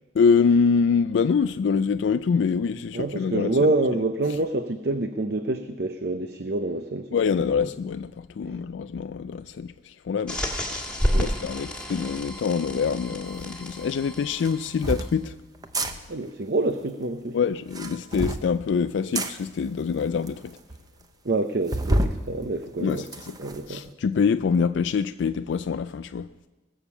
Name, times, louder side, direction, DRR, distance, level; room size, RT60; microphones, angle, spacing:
voice 1, 0.1-3.7 7.1-10.7 11.2-15.4 15.8-15.9 17.3-20.6 22.8-23.3 23.7-26.3, left 5 dB, 85° left, 0.4 m, -25 dB
voice 2, 2.9-7.1 8.5-8.6 11.1-11.3 16.1-17.4 21.2-23.0 23.4-23.9, right 2 dB, 60° right, 0.6 m, -27 dB
sound 1, 10.3-15.1, equal, 5° left, 1.6 m, -30 dB
sound 2, 13.4-13.5 14.4-15.1 15.6-15.9 17.6-18.5 19.2-19.3 20.0-20.1 20.3-20.4 20.7-20.8 21.7-22.2 22.6-23.6, right 1 dB, 20° right, 0.7 m, -27 dB
20.5 x 7.2 x 7.1 m
head